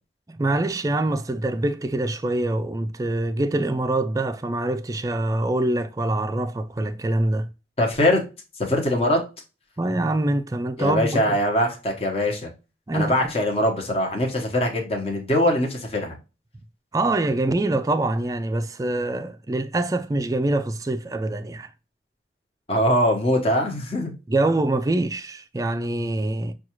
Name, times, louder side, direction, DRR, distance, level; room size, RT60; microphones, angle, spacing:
voice 1, 0.3-7.5 9.8-11.2 12.9-13.1 16.9-21.7 24.3-26.5, right 2 dB, 20° right, 0.3 m, -24 dB
voice 2, 7.8-8.2 8.6-9.2 10.8-12.5 12.9-16.2 22.7-24.1, left 1 dB, 35° left, 1.0 m, -22 dB
6.0 x 2.3 x 2.9 m
head